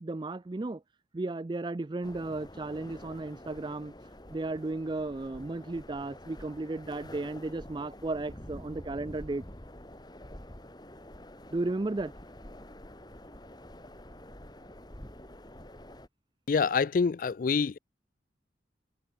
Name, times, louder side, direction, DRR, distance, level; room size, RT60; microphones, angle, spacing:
voice 1, 0.0-0.8 1.1-3.9 4.3-9.4 11.5-12.1, right 2 dB, 25° right, 0.4 m, -34 dB
sound 1, 2.0-16.1, left 1 dB, 25° left, 3.7 m, -48 dB
voice 2, 16.5-17.8, left 5 dB, 50° left, 0.4 m, -26 dB
head